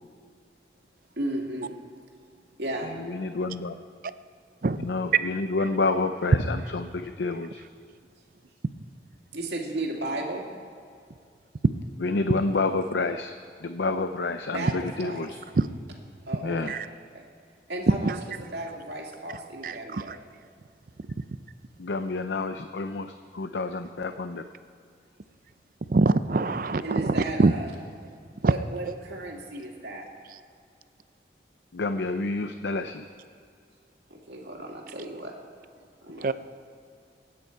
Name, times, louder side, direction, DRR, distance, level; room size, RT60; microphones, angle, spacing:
voice 1, 1.2-1.7 2.6-2.9 9.3-10.4 14.5-15.3 16.3-16.7 17.1-17.2 17.7-18.1 18.4-20.1 26.8-27.7 28.4-30.1 34.1-35.3 36.0-36.3, right 1 dB, 75° right, -1 dB, 2.4 m, -34 dB
voice 2, 2.8-3.8 4.8-7.6 12.0-13.3 13.6-15.4 16.4-16.8 21.8-24.4 31.7-33.1, left 3 dB, 80° left, 9 dB, 0.6 m, -29 dB
voice 3, 19.6-20.2 25.9-27.5 28.4-28.5 28.9-29.0 36.2-36.3, right 3 dB, 50° right, 13 dB, 0.5 m, -24 dB
25.0 x 9.5 x 4.6 m, 2.3 s
head